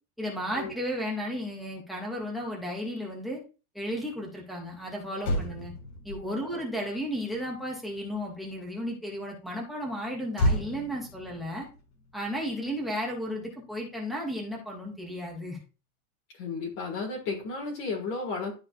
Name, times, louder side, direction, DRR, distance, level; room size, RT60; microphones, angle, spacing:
voice 1, 0.2-3.4 3.7-5.7 6.0-11.7 12.1-15.6, equal, ahead, -1 dB, 0.4 m, -34 dB
Motor vehicle (road), 4.7-4.8 5.1-8.7 10.3-12.9 13.2-13.5, equal, 70° left, 3.4 m, -33 dB
voice 2, 16.3-18.5, left 4 dB, 40° left, -1 dB, 1.8 m, -33 dB
12.0 x 4.1 x 2.4 m, 0.33 s
supercardioid pair, 175°, 44 cm